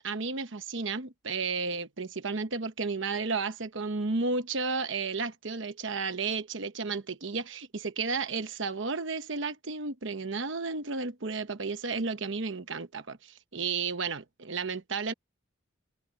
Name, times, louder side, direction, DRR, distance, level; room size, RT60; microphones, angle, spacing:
voice 1, 0.0-15.1, right 4 dB, 65° right, 1.0 m, -33 dB
head